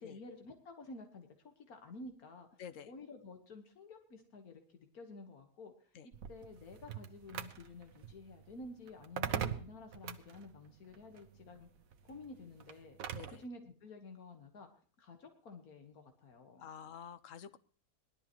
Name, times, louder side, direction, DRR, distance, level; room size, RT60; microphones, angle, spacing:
voice 1, 0.0-2.5 2.9-5.7 6.0-11.7 12.0-13.0 13.3-14.7 15.0-16.7, left 3 dB, 90° left, 5 dB, 1.9 m, -51 dB
sound 1, 6.1-13.4, right 8 dB, 75° right, 1.3 m, -43 dB
voice 2, 16.6-17.6, left 8 dB, 65° left, 13 dB, 1.2 m, -49 dB
19.0 x 12.0 x 3.0 m, 0.43 s
omnidirectional pair, 1.5 m